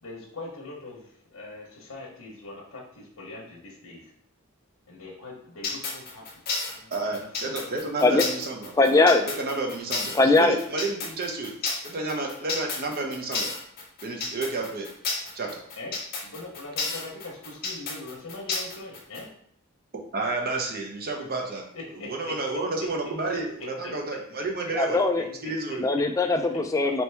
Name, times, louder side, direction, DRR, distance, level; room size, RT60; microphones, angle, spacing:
voice 1, 0.0-4.1 4.9-6.4 6.7-7.9 15.8-15.9 16.2-19.3 21.7-22.3 23.8-23.9 25.2-25.3 25.7-25.8, left 2 dB, 80° left, -3 dB, 1.0 m, -42 dB
sound 1, 5.6-19.2, left 4 dB, 45° left, 0.9 m, -31 dB
voice 2, 6.9-8.7 9.2-11.5 11.8-13.5 14.0-14.9 15.3-15.6 19.9-21.7 22.0-25.0 25.3-25.9, right 3 dB, 45° right, 1 dB, 0.8 m, -31 dB
voice 3, 8.8-9.3 10.1-10.6 24.8-25.3 25.8-27.0, left 2 dB, 15° left, 5 dB, 0.3 m, -20 dB
4.4 x 3.0 x 3.3 m, 0.67 s
head